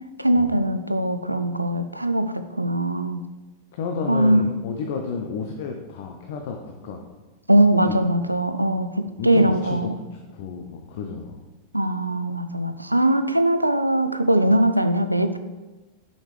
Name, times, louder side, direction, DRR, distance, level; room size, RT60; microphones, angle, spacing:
voice 1, 0.2-3.2 4.1-4.6 7.5-10.0 11.7-15.4, right 1 dB, 85° right, 10 dB, 0.4 m, -21 dB
voice 2, 3.7-7.0 7.9-8.0 9.2-11.4, left 5 dB, 55° left, 3 dB, 0.6 m, -31 dB
6.5 x 6.2 x 3.2 m, 1.2 s
figure-of-eight pair, 90°, 0 cm